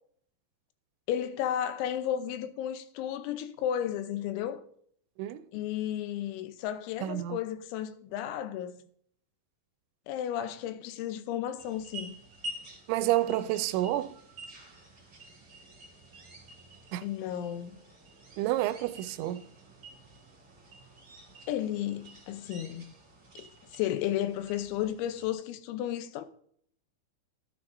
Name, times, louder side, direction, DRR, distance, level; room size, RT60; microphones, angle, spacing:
voice 1, 1.1-4.6 5.5-8.9 10.1-12.2 17.0-17.8 21.5-22.9 23.4-23.5 23.7-26.3, left 11 dB, 90° left, 3.1 m, -33 dB
voice 2, 7.0-7.4 12.9-14.1 16.9-17.1 18.4-19.4, right 14 dB, 85° right, 2.8 m, -29 dB
sound 1, 11.6-25.3, right 1 dB, 40° right, 0.8 m, -49 dB
13.5 x 9.7 x 2.6 m
omnidirectional pair, 5.2 m